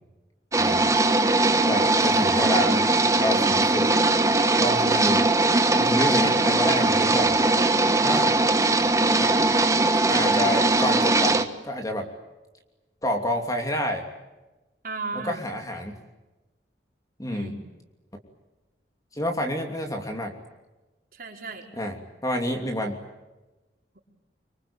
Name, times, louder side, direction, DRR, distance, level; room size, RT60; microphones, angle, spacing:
sound 1, 0.5-11.4, right 2 dB, 20° right, 1.3 m, -20 dB
voice 1, 1.7-3.9 4.6-5.3 5.7-7.4 8.0-8.4 9.2-9.4 10.1-12.1 13.0-14.1 15.1-16.0 17.2-17.6 19.1-20.3 21.8-22.0 22.2-23.0, left 1 dB, 20° left, 3 dB, 2.9 m, -28 dB
voice 2, 14.8-15.5 17.3-17.5 21.1-21.7, right 3 dB, 55° right, 0 dB, 4.9 m, -36 dB
25.5 x 25.0 x 8.8 m, 1.1 s
head